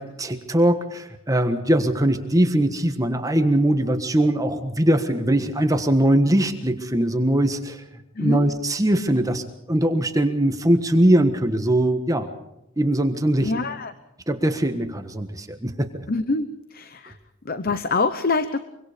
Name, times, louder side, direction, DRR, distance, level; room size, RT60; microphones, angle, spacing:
voice 1, 0.0-7.8 8.2-12.3 12.8-13.5 14.3-16.0, right 1 dB, 15° right, 7 dB, 1.4 m, -21 dB
voice 2, 8.1-8.5 13.4-13.9 16.1-17.2 17.4-18.6, left 3 dB, 45° left, 12 dB, 0.9 m, -25 dB
24.5 x 24.5 x 5.2 m, 0.85 s
head